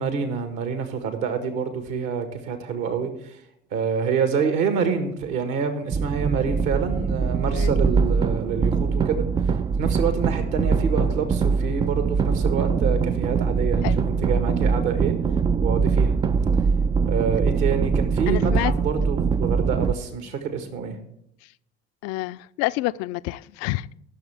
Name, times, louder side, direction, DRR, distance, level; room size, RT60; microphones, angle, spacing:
voice 1, 0.0-3.4 3.7-9.2 9.8-15.1 15.6-16.2 17.1-21.0, right 6 dB, 60° right, 1.7 m, -27 dB
sound 1, 5.9-19.9, right 5 dB, 15° right, 0.3 m, -22 dB
voice 2, 18.3-18.7 22.0-23.9, left 18 dB, 50° left, 0.5 m, -28 dB
20.0 x 7.0 x 3.5 m
figure-of-eight pair, 55°, 32 cm